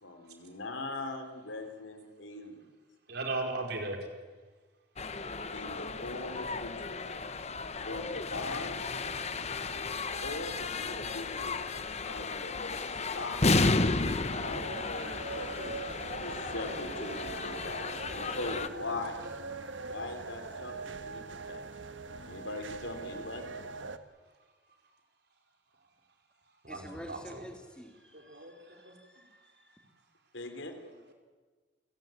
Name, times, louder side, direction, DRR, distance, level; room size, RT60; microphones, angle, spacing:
voice 1, 0.0-2.7 5.5-7.0 7.8-8.8 10.2-11.8 12.1-13.4 14.4-19.2 19.9-21.6 22.2-23.5 30.3-30.7, left 2 dB, 85° left, 6 dB, 3.7 m, -41 dB
voice 2, 3.1-4.1 6.5-6.8 7.1-7.2 8.4-8.5 9.1-9.2 10.7-11.0 15.9-16.3 17.1-17.2 17.5-17.6 26.6-27.4 28.1-29.2, right 2 dB, 60° right, 3 dB, 4.9 m, -39 dB
sound 1, 5.0-18.7, left 3 dB, 35° left, 1.1 m, -33 dB
sound 2, 13.8-24.0, right 3 dB, 80° right, 1.5 m, -42 dB
voice 3, 26.7-29.9, equal, 5° left, 2 dB, 3.6 m, -49 dB
29.0 x 17.0 x 9.2 m, 1.4 s
head